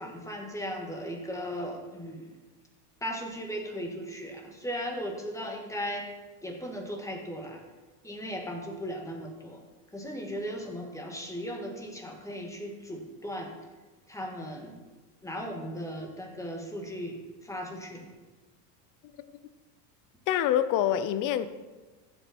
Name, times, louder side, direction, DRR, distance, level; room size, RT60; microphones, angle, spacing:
voice 1, 0.0-2.3 3.0-6.1 6.4-7.6 8.0-9.6 9.9-13.5 14.1-14.8 15.2-18.1, equal, 5° left, 2 dB, 1.6 m, -37 dB
voice 2, 20.3-21.5, left 10 dB, 40° left, 12 dB, 0.7 m, -25 dB
14.0 x 8.0 x 4.3 m, 1.2 s
supercardioid pair, 135°, 49 cm